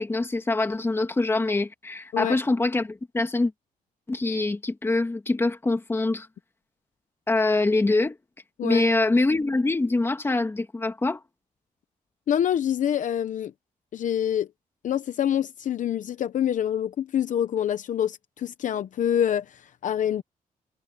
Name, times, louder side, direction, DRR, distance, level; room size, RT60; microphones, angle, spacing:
voice 1, 0.0-3.5 4.1-6.3 7.3-8.2 8.6-11.2, left 2 dB, 15° left, 2.4 m, -24 dB
voice 2, 12.3-13.5 13.9-14.5 14.8-20.2, left 10 dB, 60° left, 0.8 m, -26 dB
wide cardioid pair, 170°, 15 cm